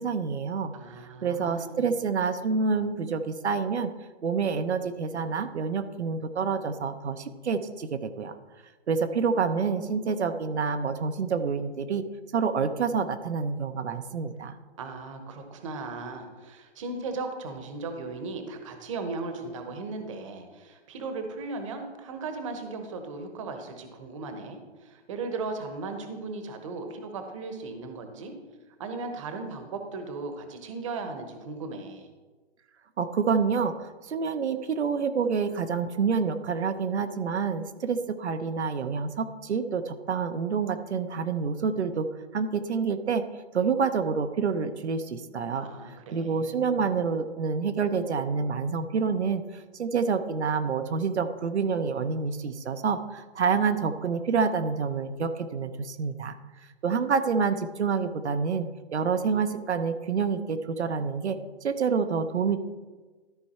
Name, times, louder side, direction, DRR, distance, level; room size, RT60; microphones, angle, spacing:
voice 1, 0.0-0.7 1.2-3.9 4.2-8.3 8.9-12.0 12.3-14.6 33.0-43.2 43.5-56.4 56.8-58.7 58.9-62.6, right 5 dB, 75° right, 8 dB, 0.8 m, -28 dB
voice 2, 0.7-1.9 14.8-28.3 28.8-32.1 45.6-46.9, right 3 dB, 30° right, 6 dB, 0.9 m, -37 dB
13.0 x 4.6 x 4.2 m, 1.3 s
hypercardioid pair, 155°, 34 cm